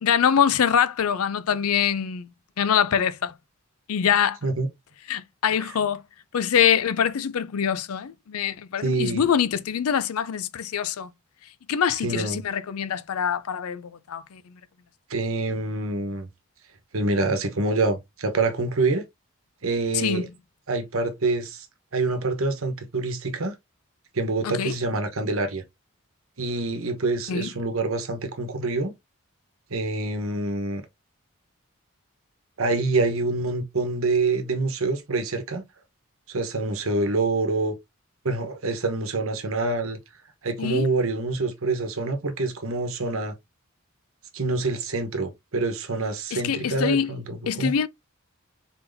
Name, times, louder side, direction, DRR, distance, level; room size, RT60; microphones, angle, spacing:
voice 1, 0.0-2.3 2.6-3.3 3.9-4.4 5.1-6.0 6.3-11.1 11.7-14.4 19.9-20.2 24.4-24.8 27.3-27.5 40.6-40.9 46.3-47.1 47.5-47.9, left 8 dB, 80° left, 0.5 m, -24 dB
voice 2, 8.8-9.2 12.0-12.4 15.1-16.3 16.9-19.0 19.6-20.3 20.7-21.7 21.9-23.5 24.1-25.6 26.4-28.9 29.7-30.8 32.6-35.6 36.3-37.7 38.2-40.0 40.4-43.3 44.3-47.7, right 3 dB, 70° right, 1.0 m, -26 dB
4.0 x 4.0 x 2.6 m
head